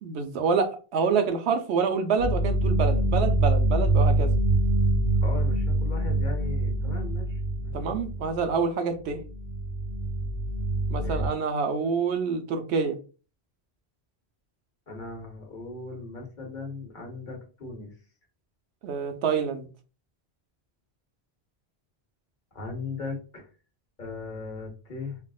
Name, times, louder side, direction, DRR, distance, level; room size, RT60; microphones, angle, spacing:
voice 1, 0.0-4.3 7.7-9.2 10.9-13.0 18.8-19.7, right 5 dB, 80° right, 0.9 m, -27 dB
sound 1, 2.2-8.5 9.1-11.3, right 1 dB, 45° right, 0.5 m, -25 dB
voice 2, 5.2-7.7 11.0-11.4 14.9-17.9 22.5-23.5 24.0-25.2, left 3 dB, 50° left, 1.0 m, -38 dB
3.4 x 2.4 x 2.3 m
omnidirectional pair, 1.1 m